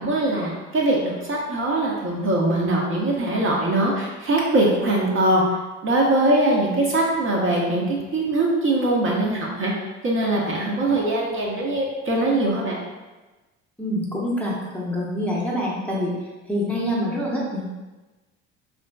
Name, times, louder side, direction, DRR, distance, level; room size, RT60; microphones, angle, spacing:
voice 1, 0.0-5.4 5.8-9.7 10.0-12.8, right 1 dB, 35° right, -2 dB, 0.6 m, -22 dB
voice 2, 13.8-16.1 16.5-17.7, equal, 5° left, -5 dB, 0.6 m, -26 dB
2.8 x 2.6 x 2.2 m, 1.2 s
hypercardioid pair, 65°, 36 cm